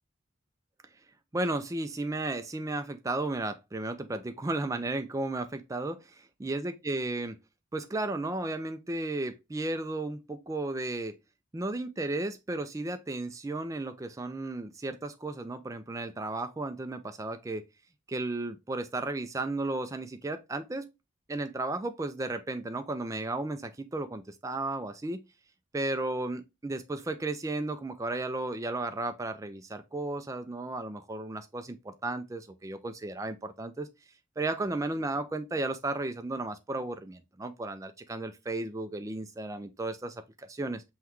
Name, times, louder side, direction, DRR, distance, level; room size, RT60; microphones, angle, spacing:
voice 1, 1.3-6.0 6.4-7.4 7.7-11.2 11.5-17.6 18.1-20.9 21.3-25.2 25.7-33.9 34.4-40.8, right 2 dB, 15° right, 0.3 m, -34 dB
5.6 x 2.3 x 3.0 m
head